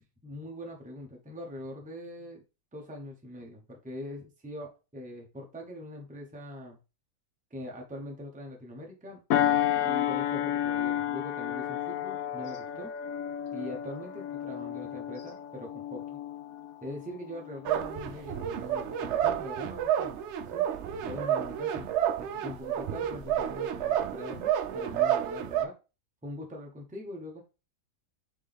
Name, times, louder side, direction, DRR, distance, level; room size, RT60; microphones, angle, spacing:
voice 1, 0.2-2.4 2.7-6.8 7.5-9.2 9.8-12.9 13.5-16.2 16.8-20.2 20.5-20.7 21.0-21.9 22.2-25.7 26.2-27.4, left 1 dB, 5° right, 1 dB, 0.8 m, -42 dB
sound 1, 9.3-18.2 18.6-18.8, left 11 dB, 85° left, 1.1 m, -32 dB
sound 2, 17.6-25.6, right 10 dB, 65° right, 0.7 m, -30 dB
4.1 x 3.6 x 3.4 m, 0.30 s
omnidirectional pair, 1.5 m